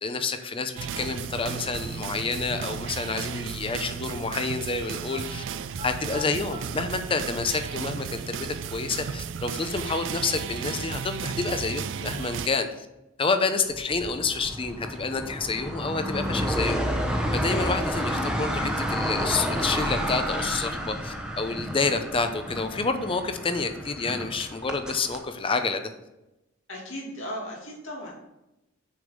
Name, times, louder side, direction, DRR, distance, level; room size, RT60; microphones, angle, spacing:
voice 1, 0.0-5.4 5.8-12.9 13.2-16.8 17.3-25.9, left 4 dB, 25° left, 8 dB, 0.6 m, -29 dB
sound 1, 0.8-12.5, right 7 dB, 65° right, 0.4 m, -34 dB
sound 2, 5.1-5.2 5.7-6.6 7.6-7.7 8.4-9.5 13.4-14.5 14.8-14.9 15.5-16.4 16.8-17.6 17.8-18.4, left 1 dB, 35° right, 1.0 m, -47 dB
voice 2, 6.1-6.5 26.7-28.1, equal, 80° left, -2 dB, 2.4 m, -37 dB
sound 3, 13.7-25.2, equal, 5° right, 0.9 m, -30 dB
6.6 x 5.3 x 5.2 m, 0.93 s
head